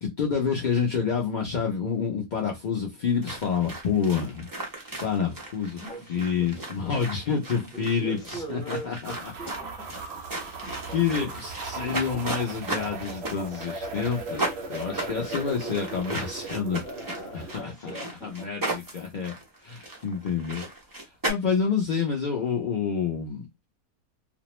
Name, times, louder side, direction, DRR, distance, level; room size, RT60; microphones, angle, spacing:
voice 1, 0.0-4.5 5.0-5.8 6.1-9.3 10.9-16.8 17.3-17.9 18.2-19.3 19.6-20.7 21.3-23.5, left 6 dB, 75° left, 0.4 m, -28 dB
sound 1, 3.2-21.3, right 2 dB, 25° right, 0.5 m, -36 dB
voice 2, 5.8-6.7 7.5-10.0 10.6-11.3 15.6-15.9 16.8-18.8, right 2 dB, 5° left, 0.8 m, -41 dB
sound 2, 9.0-17.6, right 3 dB, 65° right, 0.7 m, -37 dB
2.5 x 2.0 x 2.9 m
omnidirectional pair, 1.6 m